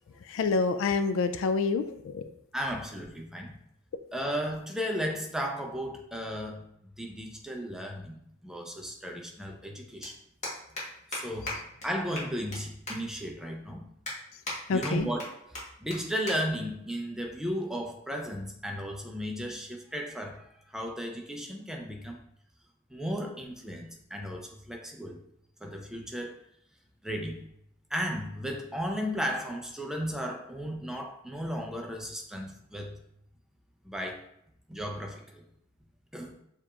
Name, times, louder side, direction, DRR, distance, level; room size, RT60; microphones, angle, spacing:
voice 1, 0.3-2.2 14.7-15.1, left 4 dB, 65° left, 10 dB, 0.3 m, -27 dB
voice 2, 2.5-3.6 4.1-6.7 7.0-10.1 11.1-13.9 14.7-15.5 15.8-22.2 22.9-25.2 25.6-26.4 27.0-27.4 27.9-33.0 33.8-34.3 34.7-35.4 36.1-36.4, equal, ahead, 2 dB, 0.4 m, -35 dB
sound 1, 10.0-10.1 10.4-10.8 11.1-11.2 11.5-11.6 11.8-11.9 12.1-12.6 12.9-13.0 13.4-13.5 14.0-14.5 14.8-15.2 15.5-15.6 15.9-16.0 16.3-16.4 16.7-16.9 17.7-17.9, left 2 dB, 35° left, 1.1 m, -36 dB
6.9 x 2.9 x 2.4 m, 0.73 s
head